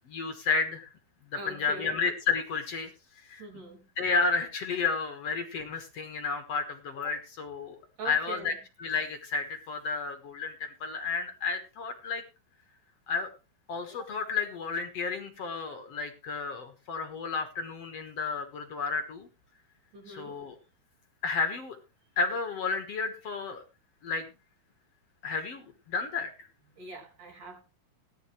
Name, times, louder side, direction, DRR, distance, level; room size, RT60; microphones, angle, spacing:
voice 1, 0.1-0.9 1.5-2.9 3.3-3.4 4.0-7.8 8.1-8.5 8.8-12.2 13.1-13.3 13.7-19.3 20.1-20.6 21.2-21.8 22.2-23.6 24.0-24.2 25.2-26.3, left 5 dB, 55° left, 1.9 m, -31 dB
voice 2, 1.4-2.0 3.4-3.8 8.0-8.6 19.9-20.4 26.8-27.6, right 2 dB, 55° right, 6.2 m, -42 dB
17.5 x 11.0 x 3.2 m
omnidirectional pair, 4.4 m